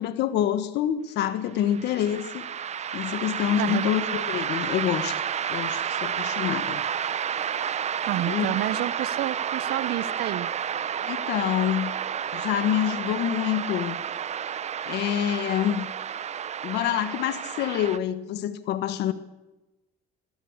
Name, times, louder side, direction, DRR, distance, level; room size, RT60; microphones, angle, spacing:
voice 1, 0.0-2.4 2.9-5.2 5.5-6.8 8.2-8.5 11.0-11.9 12.3-14.0 14.9-15.9 16.6-19.1, left 11 dB, 80° left, 12 dB, 1.6 m, -26 dB
sound 1, 1.6-18.0, right 8 dB, 40° right, 1.0 m, -31 dB
voice 2, 3.6-3.9 8.0-10.5, right 14 dB, 75° right, 18 dB, 1.1 m, -29 dB
20.0 x 20.0 x 8.1 m, 1.1 s
cardioid pair, 110°, 17 cm